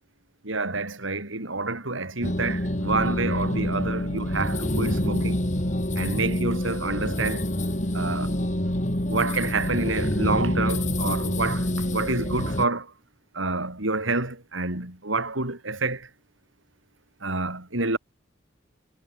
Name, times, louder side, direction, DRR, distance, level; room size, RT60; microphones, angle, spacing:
voice 1, 0.4-5.5 5.9-7.4 7.9-8.3 9.1-12.9 13.3-16.1 17.2-18.0, right 3 dB, 90° right, 5.3 m, -28 dB
sound 1, 2.2-12.7, left 1 dB, 40° left, 3.3 m, -27 dB
head